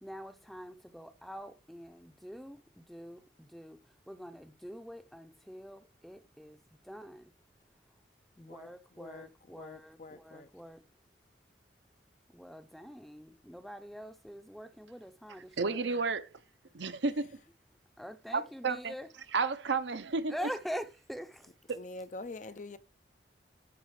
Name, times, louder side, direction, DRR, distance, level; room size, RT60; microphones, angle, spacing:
voice 1, 0.0-7.3 8.4-10.8 12.3-15.9 18.0-19.1 20.3-21.5, equal, ahead, 0.6 m, -45 dB
voice 2, 8.4-10.5 21.7-22.8, left 2 dB, 40° left, 0.6 m, -46 dB
voice 3, 15.6-16.3 16.7-17.4 18.3-18.9 19.3-20.3, right 4 dB, 70° right, 0.8 m, -31 dB
13.5 x 4.9 x 3.2 m
head